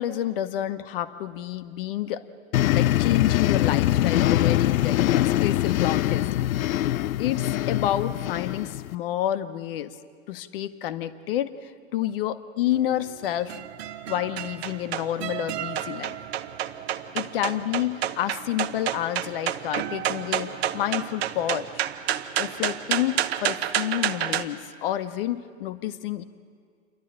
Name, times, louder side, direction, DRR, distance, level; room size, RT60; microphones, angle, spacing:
voice 1, 0.0-2.2 2.7-6.4 7.2-10.0 10.3-13.6 14.1-16.2 17.1-21.8 22.4-26.2, left 12 dB, 40° left, 11 dB, 1.0 m, -29 dB
sound 1, 2.5-9.0, left 14 dB, 85° left, 0.5 m, -23 dB
sound 2, 12.7-24.4, right 11 dB, 50° right, 1.0 m, -30 dB
28.5 x 11.5 x 8.7 m, 2.1 s
hypercardioid pair, 150°, 41 cm